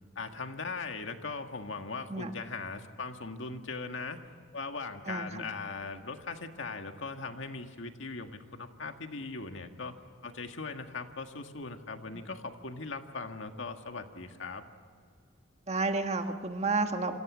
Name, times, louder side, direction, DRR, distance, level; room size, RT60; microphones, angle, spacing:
voice 1, 0.2-4.2 4.5-9.9 10.2-14.6, left 4 dB, 75° left, 6 dB, 1.8 m, -39 dB
voice 2, 5.0-5.4 15.7-17.2, right 3 dB, 35° right, 6 dB, 1.5 m, -31 dB
28.0 x 26.0 x 6.3 m, 2.2 s
head